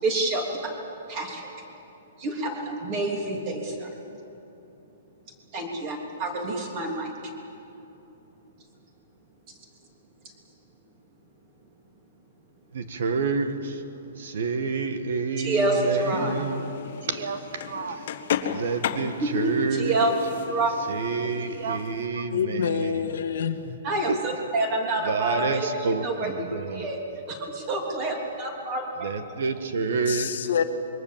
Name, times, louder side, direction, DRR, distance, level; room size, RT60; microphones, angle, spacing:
voice 1, 0.0-0.7 1.1-1.5 2.2-3.9 5.5-7.3 15.4-16.4 19.2-20.1 20.5-20.7 23.8-27.0 27.3-29.1, right 2 dB, 25° right, 1 dB, 3.2 m, -28 dB
voice 2, 12.7-13.8 14.2-18.1 18.5-20.0 20.9-23.0 24.1-24.2 25.0-26.9 29.0-30.4, right 4 dB, 55° right, 9 dB, 1.6 m, -29 dB
sound 1, 15.8-22.1, left 8 dB, 45° left, 1.3 m, -35 dB
voice 3, 22.3-23.8 30.1-30.6, left 7 dB, 65° left, 7 dB, 1.6 m, -27 dB
26.5 x 23.0 x 7.4 m, 2.9 s
hypercardioid pair, 180°, 0 cm